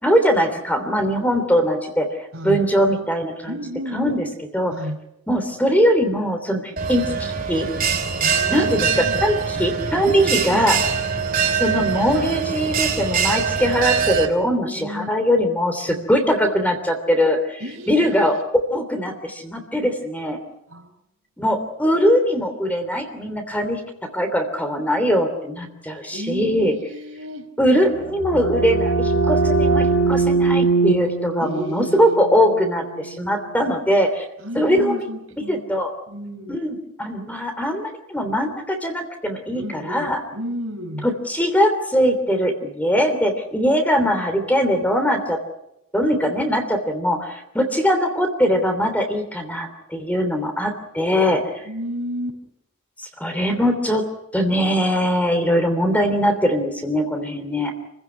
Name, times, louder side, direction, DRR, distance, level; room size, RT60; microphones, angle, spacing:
voice 1, 0.0-2.1 2.4-3.6 3.9-4.2 4.5-4.7 5.3-7.7 8.5-10.8 11.5-17.6 17.9-20.4 21.4-23.8 24.1-26.7 27.6-34.2 34.5-35.1 35.5-35.9 36.5-40.2 41.0-45.4 45.9-51.6 53.0-54.0 54.3-57.7, equal, 5° left, 6 dB, 3.1 m, -21 dB
voice 2, 2.3-2.6 3.4-4.2 4.7-5.0 8.2-9.2 10.0-10.9 14.4-15.1 15.9-16.0 17.6-18.4 20.7-20.9 26.1-27.5 31.4-32.1 34.4-35.6 36.1-36.6 39.5-41.1 51.6-52.4, equal, 75° right, 3 dB, 5.0 m, -32 dB
Bell, 6.8-14.3, right 6 dB, 40° right, 3.1 m, -23 dB
sound 1, 27.8-33.4, right 3 dB, 60° left, 1.7 m, -21 dB
29.0 x 16.0 x 9.9 m, 0.86 s
head